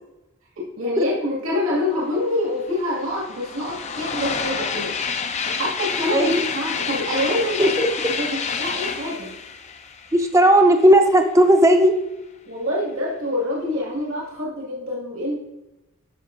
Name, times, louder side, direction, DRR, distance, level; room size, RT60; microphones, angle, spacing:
voice 1, 0.6-4.9 5.4-9.3 12.5-15.3, left 1 dB, 75° right, -4 dB, 2.2 m, -26 dB
sound 1, 2.0-2.1 2.4-11.0, left 6 dB, 30° left, 0.5 m, -29 dB
voice 2, 6.1-6.4 7.6-7.9 10.1-12.0, right 1 dB, 15° right, 5 dB, 0.6 m, -15 dB
12.5 x 5.4 x 2.6 m, 0.98 s
head